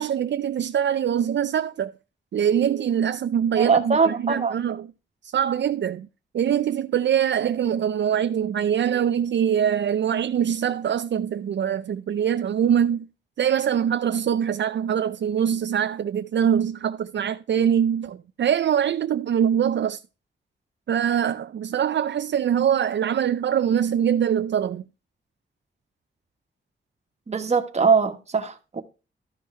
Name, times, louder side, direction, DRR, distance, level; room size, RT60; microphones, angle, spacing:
voice 1, 0.0-1.9 2.3-4.9 5.2-6.1 6.3-13.1 13.4-20.0 20.9-24.8, right 9 dB, 65° right, 0.5 m, -23 dB
voice 2, 3.6-4.6 27.3-28.8, right 5 dB, 35° right, 1.4 m, -22 dB
13.0 x 5.5 x 4.3 m
wide cardioid pair, 165°, 20 cm